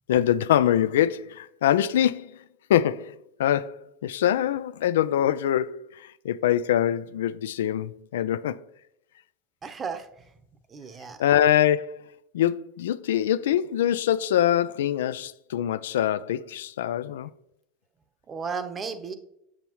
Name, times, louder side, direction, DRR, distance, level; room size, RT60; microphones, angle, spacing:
voice 1, 0.1-2.3 2.7-8.6 11.2-12.0 12.3-17.3, left 11 dB, 90° left, 0.3 m, -24 dB
voice 2, 9.6-10.1 10.7-11.2 18.3-19.1, right 5 dB, 25° right, 0.8 m, -34 dB
7.3 x 6.8 x 3.0 m
supercardioid pair, 110°, 0 cm